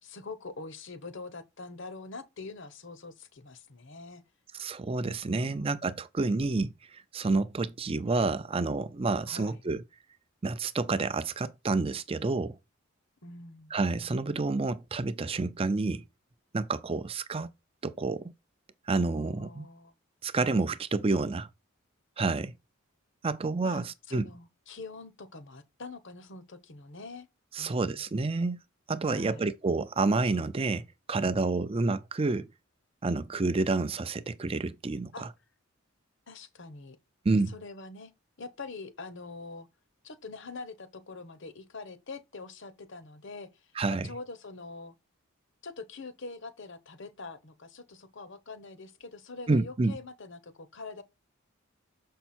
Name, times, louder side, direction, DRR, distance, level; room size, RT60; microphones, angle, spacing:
voice 1, 0.0-4.2 5.2-5.8 9.3-9.6 13.2-13.7 19.1-19.9 23.6-27.3 27.6-28.0 29.1-29.5 35.1-35.3 36.3-37.0 37.5-38.1 38.4-39.7 40.0-44.9 45.6-51.0, left 3 dB, 60° left, 1.0 m, -44 dB
voice 2, 4.5-9.8 10.4-12.6 13.7-16.0 16.5-17.5 17.8-18.3 18.9-19.7 20.2-21.5 22.2-22.5 23.2-24.3 27.5-28.6 28.9-32.5 33.0-35.3 37.2-37.5 43.8-44.1 49.5-50.0, right 3 dB, 25° right, 0.4 m, -29 dB
7.0 x 5.6 x 4.3 m
head